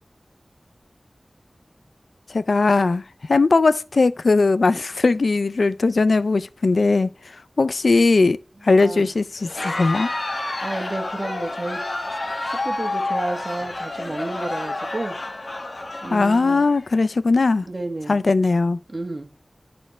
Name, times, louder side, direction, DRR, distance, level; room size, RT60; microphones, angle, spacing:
voice 1, 2.3-3.0 3.3-7.1 7.6-8.4 8.6-10.1 16.1-17.7 18.1-18.8, left 3 dB, 80° left, 0.3 m, -19 dB
voice 2, 8.7-9.1 10.6-11.9 12.4-15.2 16.0-16.6 17.6-18.2 18.9-19.3, right 2 dB, 40° right, 1.5 m, -31 dB
Crowd, 9.4-16.9, left 2 dB, 55° left, 1.3 m, -29 dB
12.0 x 4.3 x 3.2 m
wide cardioid pair, 55°, 0 cm